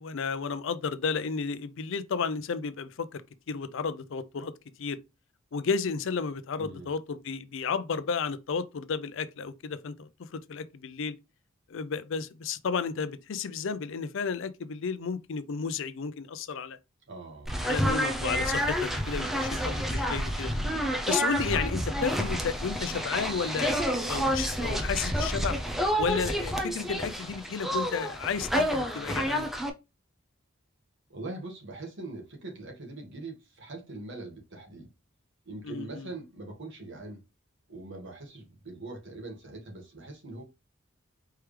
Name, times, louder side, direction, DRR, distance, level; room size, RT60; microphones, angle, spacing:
voice 1, 0.0-3.2 3.5-4.5 4.8-5.0 5.5-11.2 11.7-16.8 17.6-20.5 21.1-25.6 26.0-29.5 35.6-36.1, left 5 dB, 65° left, 0.5 m, -32 dB
voice 2, 6.6-6.9 17.1-17.5 31.1-34.9 35.4-37.2 37.7-40.4, right 2 dB, 65° right, 1.7 m, -42 dB
sound 1, 17.5-29.7, equal, ahead, 0.6 m, -29 dB
4.5 x 3.4 x 3.2 m
head